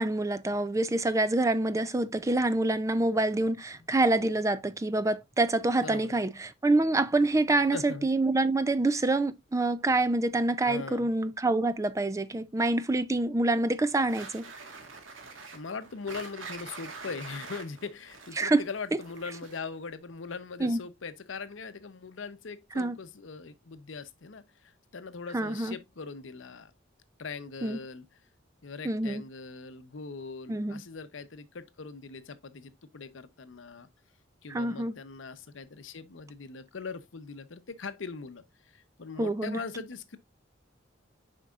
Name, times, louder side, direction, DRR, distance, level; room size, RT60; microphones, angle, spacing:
voice 1, 0.0-14.4 18.4-18.6 20.6-20.8 22.8-23.0 25.3-25.8 27.6-27.8 28.8-29.2 30.5-30.8 34.5-34.9 39.2-39.6, right 2 dB, 15° right, 0.4 m, -26 dB
voice 2, 5.8-6.2 7.7-8.1 10.6-11.1 15.5-26.7 27.2-28.1 28.6-33.9 34.4-40.2, left 4 dB, 75° left, 0.7 m, -41 dB
sound 1, 14.1-19.7, right 4 dB, 85° right, 1.5 m, -45 dB
7.5 x 5.3 x 2.4 m
head